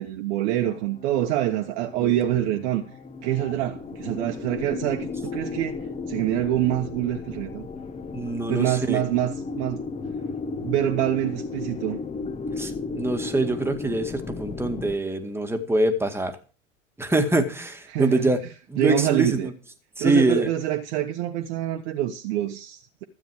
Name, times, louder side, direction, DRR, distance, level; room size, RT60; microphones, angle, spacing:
voice 1, 0.0-2.9 3.2-5.8 6.1-7.7 8.5-9.8 10.6-12.0 17.9-18.3 18.8-19.5 20.0-23.0, right 13 dB, 60° right, 1.4 m, -26 dB
sound 1, 0.6-14.9, left 4 dB, 15° left, 1.3 m, -35 dB
voice 2, 8.1-9.0 12.6-16.4 17.0-18.4 18.7-19.5 20.0-20.5, right 2 dB, 5° right, 1.9 m, -24 dB
13.0 x 9.1 x 4.8 m
hypercardioid pair, 100°, 39 cm